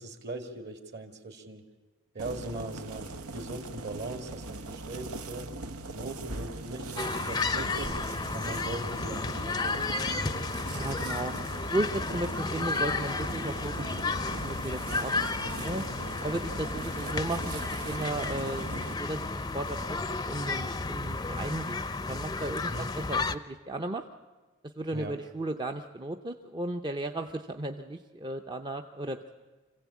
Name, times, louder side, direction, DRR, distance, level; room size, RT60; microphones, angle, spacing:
voice 1, 0.0-1.6 2.1-5.5 5.9-8.0 8.3-10.3 22.7-22.9 24.9-25.2, right 2 dB, 50° right, 6 dB, 2.2 m, -40 dB
sound 1, 2.2-18.9, right 3 dB, 85° right, 1.0 m, -40 dB
sound 2, 7.0-23.3, left 3 dB, 20° left, 0.6 m, -33 dB
voice 2, 10.7-11.3 11.7-15.8 16.2-18.7 19.0-24.0 24.6-29.3, right 1 dB, 20° right, 5 dB, 0.6 m, -35 dB
25.5 x 16.0 x 8.4 m, 1.3 s
head